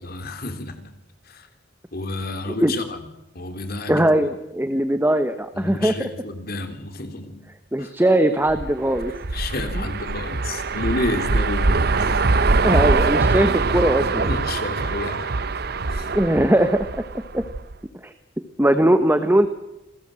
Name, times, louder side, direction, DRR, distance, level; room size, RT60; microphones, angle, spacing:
voice 1, 0.0-0.9 1.3-1.5 1.9-3.1 3.4-4.3 5.5-7.4 7.8-7.9 9.3-12.0 14.3-15.4 15.9-16.1 18.7-18.8, left 2 dB, 55° left, 7 dB, 3.5 m, -30 dB
voice 2, 3.9-6.1 7.7-9.1 12.0-12.1 12.6-14.3 16.0-16.9 17.3-17.4 18.0-18.1 18.6-19.5, right 1 dB, 10° right, 9 dB, 1.2 m, -20 dB
sound 1, 8.5-17.7, right 3 dB, 55° right, 0.9 m, -23 dB
27.5 x 20.5 x 7.7 m, 0.92 s
head